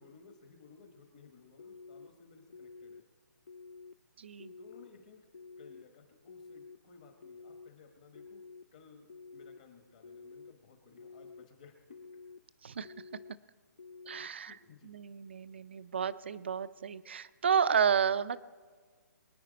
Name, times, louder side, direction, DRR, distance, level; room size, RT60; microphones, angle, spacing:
voice 1, 0.0-3.0 4.5-5.3 5.6-8.4 8.7-12.0 14.3-14.9, left 5 dB, 25° left, 5 dB, 1.0 m, -58 dB
sound 1, 1.6-2.1 2.5-3.0 3.5-3.9 4.4-4.9 5.3-5.8 6.3-6.8 7.2-7.7 8.1-8.6 9.1-9.6 10.0-10.5 11.0-11.4 11.9-12.4 12.8-13.3 13.8-14.3, left 4 dB, 45° left, 0.4 m, -50 dB
voice 2, 4.2-4.5 12.6-12.9 14.1-14.5 14.8-18.4, right 7 dB, 35° right, 15 dB, 0.4 m, -31 dB
23.5 x 9.4 x 5.1 m, 1.5 s
hypercardioid pair, 180°, 10 cm